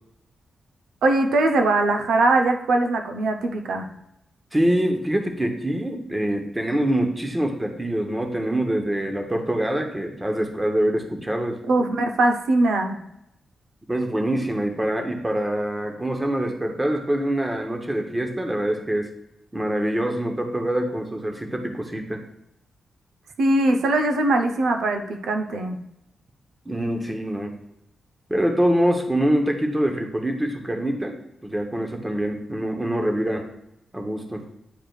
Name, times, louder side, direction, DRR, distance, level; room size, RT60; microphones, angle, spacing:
voice 1, 1.0-3.9 11.7-13.0 23.4-25.8, right 2 dB, 85° right, 4 dB, 0.7 m, -21 dB
voice 2, 4.5-11.6 13.9-19.1 19.5-22.2 26.7-27.5 28.3-33.4 33.9-34.4, right 1 dB, 15° right, 4 dB, 0.9 m, -25 dB
9.0 x 4.8 x 2.4 m, 0.82 s
wide cardioid pair, 130°, 0 cm